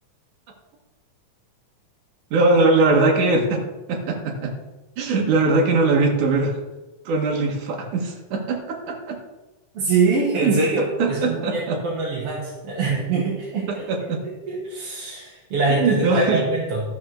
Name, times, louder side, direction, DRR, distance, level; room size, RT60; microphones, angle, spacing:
voice 1, 2.3-3.6 3.9-4.5 5.0-6.6 7.1-9.2 10.4-10.6 11.0-11.8 13.9-14.2 15.7-16.4, right 3 dB, 75° right, 0 dB, 3.0 m, -21 dB
voice 2, 9.7-13.9 14.5-16.8, right 3 dB, 55° right, -5 dB, 2.8 m, -24 dB
13.5 x 6.2 x 6.4 m, 1.1 s
omnidirectional pair, 3.5 m